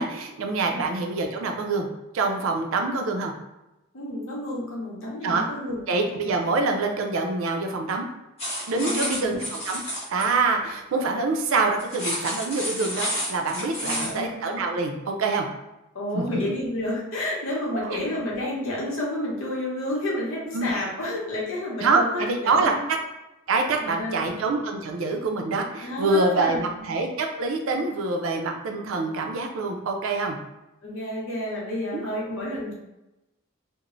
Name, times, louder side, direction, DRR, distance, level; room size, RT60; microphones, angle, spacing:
voice 1, 0.0-1.9 2.1-3.3 5.2-5.4 5.9-8.0 8.7-9.4 9.7-9.8 10.1-15.5 16.1-16.5 17.7-18.0 20.5-20.7 21.8-23.0 23.5-30.4 31.9-32.1, right 3 dB, 75° right, 3 dB, 0.4 m, -25 dB
voice 2, 3.9-5.8 8.8-9.4 13.8-14.3 15.9-22.8 23.7-24.4 25.8-27.0 30.8-32.7, left 1 dB, 80° left, -4 dB, 0.8 m, -30 dB
sound 1, 8.4-10.3 11.8-14.2, equal, 30° left, 0.8 m, -30 dB
3.0 x 2.0 x 2.4 m, 0.96 s
head